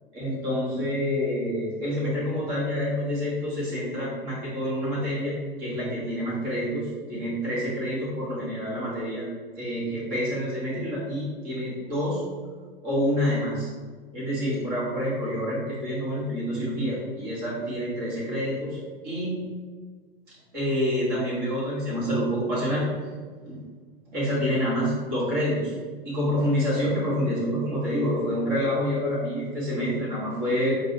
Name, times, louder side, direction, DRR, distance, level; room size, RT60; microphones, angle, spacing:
voice 1, 0.1-9.3 9.6-12.2 12.8-13.7 14.1-18.8 19.0-19.4 20.5-22.9 23.5-23.6 24.1-25.7 26.0-30.7, equal, 30° right, -8 dB, 1.3 m, -27 dB
4.7 x 2.7 x 2.9 m, 1.5 s
figure-of-eight pair, 100°, 29 cm